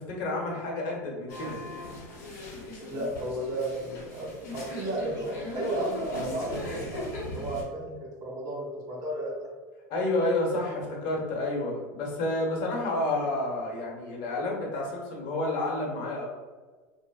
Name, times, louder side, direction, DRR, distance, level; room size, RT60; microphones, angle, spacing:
voice 1, 0.0-1.6 9.9-16.2, left 2 dB, 60° left, -2 dB, 1.0 m, -30 dB
sound 1, 1.3-7.6, left 2 dB, 90° left, 1.0 m, -38 dB
voice 2, 2.9-4.3 4.5-9.3, right 2 dB, 40° right, -2 dB, 1.2 m, -33 dB
3.5 x 2.0 x 2.3 m, 1.4 s
supercardioid pair, 105°, 10 cm